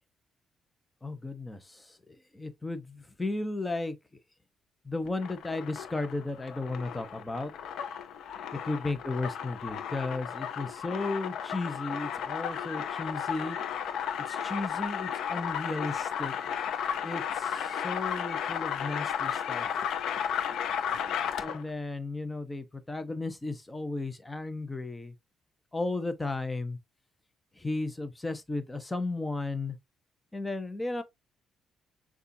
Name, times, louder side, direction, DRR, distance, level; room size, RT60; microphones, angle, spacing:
voice 1, 1.0-4.0 4.8-7.5 8.6-13.6 14.3-16.5 17.0-19.7 21.0-25.1 25.7-26.8 27.5-29.8 30.3-31.0, left 2 dB, 15° left, 0.8 m, -35 dB
sound 1, 5.0-21.7, left 8 dB, 75° left, 0.6 m, -34 dB
6.6 x 2.4 x 2.7 m
cardioid pair, 90°, 0 cm